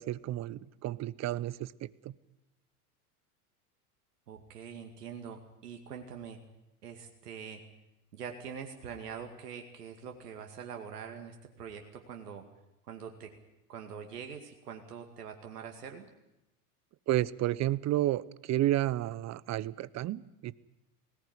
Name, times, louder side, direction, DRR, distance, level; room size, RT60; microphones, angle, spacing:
voice 1, 0.0-2.1 17.1-20.5, right 14 dB, 35° right, 19 dB, 0.9 m, -31 dB
voice 2, 4.3-6.4 6.8-7.6 8.1-12.4 12.9-13.3 13.7-16.1, right 7 dB, 85° right, 4 dB, 2.3 m, -44 dB
20.0 x 18.0 x 9.5 m, 0.91 s
hypercardioid pair, 95°, 46 cm